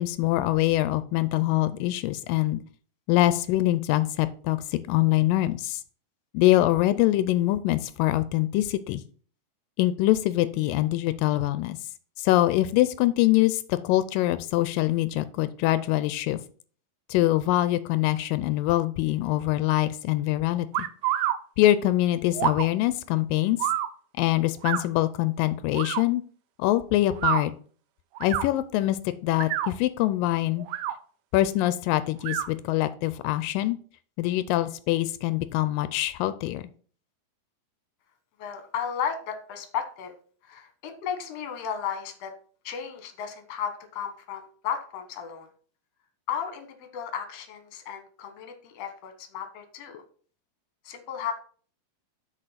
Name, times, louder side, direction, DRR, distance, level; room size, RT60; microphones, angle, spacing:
voice 1, 0.0-2.6 3.1-5.8 6.3-9.0 9.8-11.8 12.2-16.4 17.1-20.9 21.6-23.6 24.2-26.2 26.6-27.5 28.2-30.7 31.3-33.8 34.2-36.6, left 15 dB, 85° left, 14 dB, 2.2 m, -24 dB
sound 1, 20.7-21.4 22.3-22.7 23.6-23.9 24.6-24.8 25.7-26.0 27.1-27.4 28.2-28.5 29.3-29.7 30.6-30.9 32.2-32.5, right 13 dB, 80° right, 1.9 m, -27 dB
voice 2, 38.4-40.1 40.4-42.3 42.6-45.5 46.3-50.0 50.8-51.3, left 8 dB, 55° left, 7 dB, 2.1 m, -34 dB
6.7 x 5.1 x 5.7 m, 0.43 s
omnidirectional pair, 3.9 m